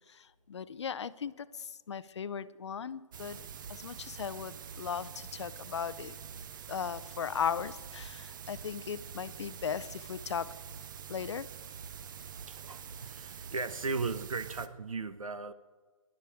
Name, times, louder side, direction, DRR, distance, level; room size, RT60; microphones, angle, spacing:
voice 1, 0.1-3.4 3.7-6.2 6.7-10.5 11.1-11.5, left 7 dB, 50° left, 0.6 m, -37 dB
sound 1, 3.1-14.7, right 7 dB, 35° right, 0.7 m, -46 dB
voice 2, 12.4-15.5, right 4 dB, 70° right, 1.0 m, -37 dB
27.0 x 11.5 x 3.5 m
figure-of-eight pair, 140°, 18 cm